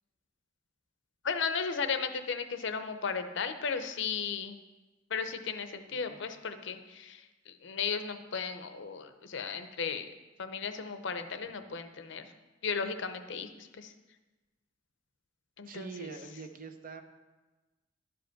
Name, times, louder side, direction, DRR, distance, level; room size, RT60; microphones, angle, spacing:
voice 1, 1.2-4.6 5.1-10.1 10.4-12.3 12.6-13.9 15.6-15.9, left 5 dB, 65° left, 9 dB, 0.6 m, -35 dB
voice 2, 15.7-17.0, right 4 dB, 45° right, 7 dB, 0.7 m, -44 dB
11.0 x 5.2 x 5.8 m, 1.2 s
head